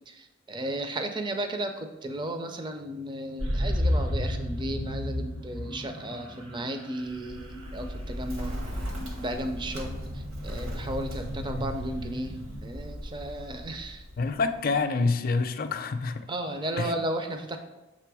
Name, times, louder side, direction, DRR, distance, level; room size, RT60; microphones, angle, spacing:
voice 1, 0.5-8.6 9.2-10.0 10.4-12.3 12.6-14.0 16.3-17.6, right 1 dB, 20° right, 6 dB, 0.4 m, -34 dB
sound 1, 3.4-12.6, left 1 dB, 90° right, 1.4 m, -33 dB
Bird, 7.0-14.8, equal, 70° right, 1.4 m, -38 dB
voice 2, 14.2-16.3 16.8-16.9, left 4 dB, 45° left, 9 dB, 0.4 m, -27 dB
6.7 x 3.2 x 4.7 m, 1.0 s
head